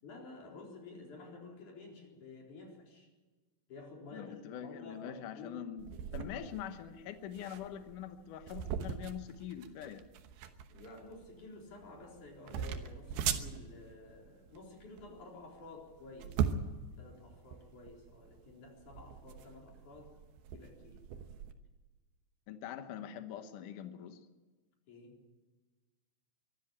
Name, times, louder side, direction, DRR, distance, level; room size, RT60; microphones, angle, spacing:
voice 1, 0.0-3.1 3.7-5.7 10.7-16.6 17.0-20.1 20.5-21.0 24.9-25.2, left 3 dB, 40° left, 0 dB, 5.2 m, -51 dB
voice 2, 4.1-10.0 22.5-24.2, left 9 dB, 85° left, 8 dB, 1.8 m, -44 dB
sound 1, 5.8-21.5, right 8 dB, 70° right, 2.6 m, -41 dB
23.5 x 13.5 x 8.8 m, 1.3 s
omnidirectional pair, 5.4 m